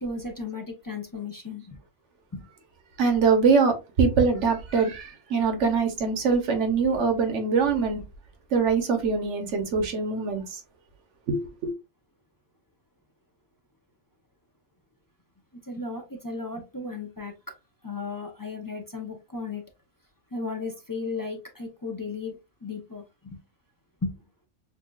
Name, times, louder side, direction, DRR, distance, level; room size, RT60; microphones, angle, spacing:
voice 1, 0.0-1.8 2.3-2.5 15.5-17.3 17.8-19.6 20.3-23.4 24.0-24.2, left 3 dB, 25° left, 0.5 m, -35 dB
voice 2, 3.0-8.0 8.5-10.6 11.3-11.7, right 5 dB, 65° right, 1.3 m, -23 dB
6.5 x 2.4 x 2.3 m
omnidirectional pair, 1.3 m